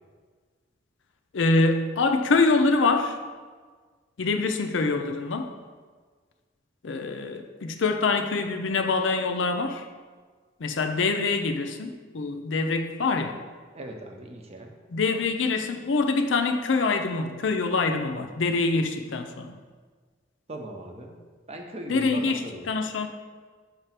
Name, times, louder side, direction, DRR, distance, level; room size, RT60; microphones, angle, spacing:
voice 1, 1.3-3.2 4.2-5.5 6.8-9.9 10.6-13.4 14.9-19.5 21.9-23.1, left 3 dB, 70° left, 6 dB, 0.5 m, -25 dB
voice 2, 13.7-14.7 20.5-21.2 21.5-22.8, right 1 dB, 35° right, 3 dB, 0.7 m, -39 dB
5.7 x 3.3 x 5.7 m, 1.5 s
head